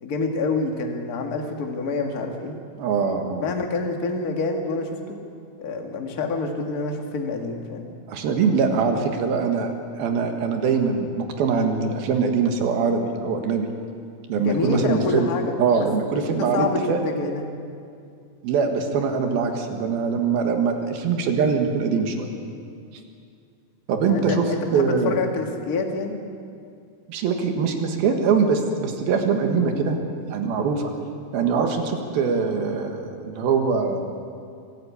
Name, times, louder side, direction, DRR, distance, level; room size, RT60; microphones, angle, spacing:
voice 1, 0.0-2.6 3.4-5.2 5.6-7.9 14.3-15.9 16.1-17.4 24.1-26.2, left 3 dB, 40° left, 3 dB, 1.3 m, -27 dB
voice 2, 2.8-3.5 8.1-13.7 14.3-15.3 15.6-17.0 18.4-22.3 23.9-24.5 24.7-25.2 27.1-30.0 30.3-30.9 31.3-34.0, right 5 dB, 75° right, 4 dB, 3.4 m, -23 dB
24.0 x 13.0 x 8.5 m, 2.4 s
omnidirectional pair, 4.3 m